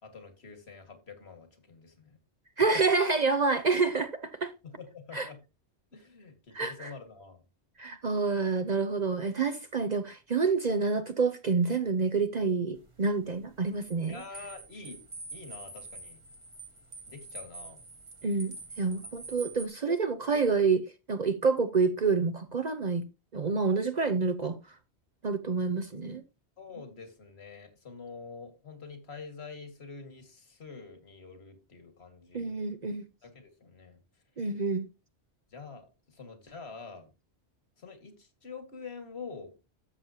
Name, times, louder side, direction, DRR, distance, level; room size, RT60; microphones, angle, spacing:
voice 1, 0.0-2.2 4.6-5.4 5.9-7.4 14.1-15.0 15.3-16.2 17.1-17.8 26.6-32.5 33.2-34.0 35.5-37.1 37.8-39.5, left 4 dB, 65° left, 2.2 m, -46 dB
voice 2, 2.6-4.5 5.1-5.3 6.5-6.9 7.8-14.2 18.2-20.8 21.1-23.0 23.3-24.6 25.2-26.2 32.3-33.0 34.4-34.9, right 4 dB, 45° right, 0.7 m, -28 dB
sound 1, 12.8-19.7, right 3 dB, 30° right, 1.3 m, -46 dB
13.0 x 7.3 x 2.8 m
omnidirectional pair, 1.1 m